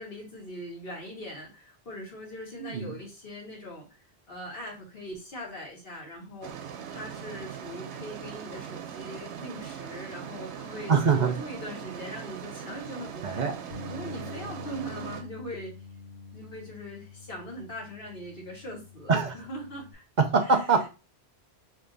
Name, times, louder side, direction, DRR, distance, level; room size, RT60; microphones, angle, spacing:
voice 1, 0.0-6.5 6.9-15.7 16.3-20.0 20.4-20.9, equal, 60° left, -2 dB, 1.7 m, -41 dB
voice 2, 2.6-2.9 10.9-11.3 13.2-13.5 19.1-19.3 20.2-20.9, right 5 dB, 55° right, 6 dB, 0.6 m, -23 dB
sound 1, 6.4-15.2, right 8 dB, 85° right, 0.9 m, -40 dB
Bass guitar, 13.7-19.9, left 4 dB, 80° left, 1.1 m, -45 dB
3.5 x 2.6 x 3.8 m, 0.31 s
omnidirectional pair, 1.1 m